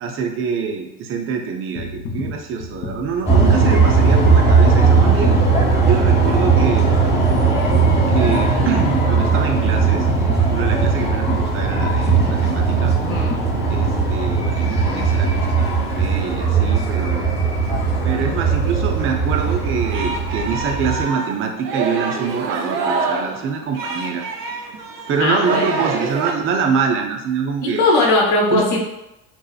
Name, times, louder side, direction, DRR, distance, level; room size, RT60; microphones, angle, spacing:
voice 1, 0.0-5.3 5.8-6.9 8.1-10.1 10.4-12.1 12.4-12.9 13.2-13.3 13.7-17.3 18.0-24.2 25.1-27.8 28.5-28.6, right 6 dB, 30° right, 3 dB, 0.4 m, -25 dB
sound 1, 1.8-14.2 14.7-14.8, left 6 dB, 35° left, 0.4 m, -31 dB
sound 2, 3.3-21.0, right 4 dB, 15° left, 0.9 m, -17 dB
Singing, 19.5-26.3, right 4 dB, 90° right, 0.5 m, -26 dB
voice 2, 25.2-25.8 27.6-28.8, left 2 dB, 55° left, -2 dB, 0.9 m, -18 dB
2.7 x 2.0 x 2.3 m, 0.92 s
hypercardioid pair, 75°, 46 cm